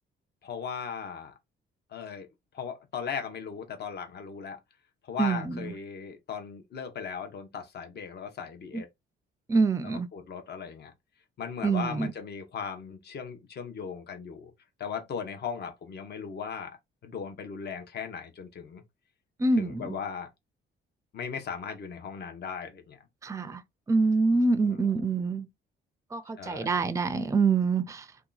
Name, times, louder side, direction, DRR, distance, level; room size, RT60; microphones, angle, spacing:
voice 1, 0.4-1.3 1.9-2.3 2.5-4.6 5.1-8.9 9.8-10.9 11.4-14.5 14.8-16.7 17.0-18.8 19.6-20.3 21.1-23.0 26.4-26.9, left 6 dB, 55° left, 1.0 m, -37 dB
voice 2, 5.2-5.7 8.7-8.8 9.5-10.1 11.6-12.1 19.4-20.0 23.2-23.6 23.9-25.5 26.1-28.1, right 4 dB, 15° right, 0.4 m, -26 dB
2.8 x 2.3 x 3.9 m
cardioid pair, 90°, 20 cm